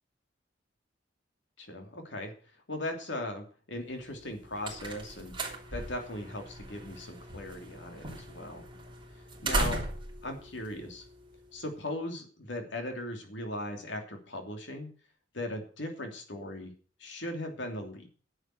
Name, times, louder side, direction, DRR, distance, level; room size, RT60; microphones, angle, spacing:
voice 1, 1.6-2.3 2.7-5.3 5.7-8.7 9.4-9.8 10.2-11.0 11.5-14.9 15.3-16.7 17.0-18.1, left 1 dB, 75° left, 5 dB, 2.9 m, -38 dB
sound 1, 4.1-11.6, right 2 dB, 25° right, 3.2 m, -38 dB
10.5 x 7.8 x 8.0 m, 0.42 s
head